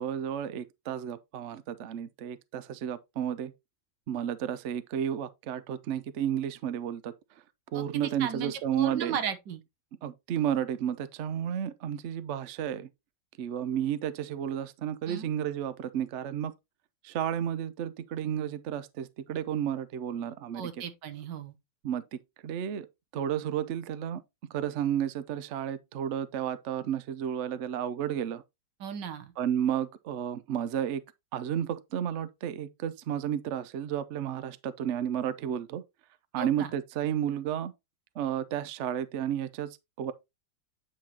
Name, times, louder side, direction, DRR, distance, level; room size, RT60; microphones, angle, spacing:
voice 1, 0.0-3.5 4.1-7.1 7.7-9.2 10.0-12.9 13.4-16.5 17.0-20.7 21.8-22.0 22.4-22.9 23.1-24.2 24.5-28.4 29.4-31.0 31.3-35.8 36.3-37.7 38.2-40.1, right 9 dB, 60° right, 0.7 m, -32 dB
voice 2, 7.7-9.6 15.1-15.3 20.5-21.5 28.8-29.3 36.4-36.7, right 7 dB, 80° right, 1.7 m, -36 dB
9.0 x 5.6 x 2.8 m
omnidirectional pair, 1.9 m